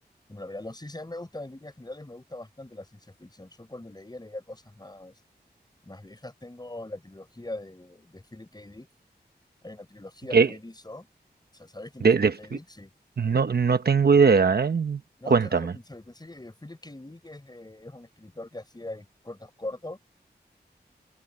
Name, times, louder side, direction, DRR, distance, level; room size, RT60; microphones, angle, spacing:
voice 1, 0.3-5.1 5.8-8.9 9.6-11.1 11.5-12.9 15.2-20.0, left 2 dB, 25° left, 7.0 m, -42 dB
voice 2, 13.2-15.0 15.3-15.7, right 5 dB, 65° right, 1.1 m, -20 dB
wide cardioid pair, 75°, 17 cm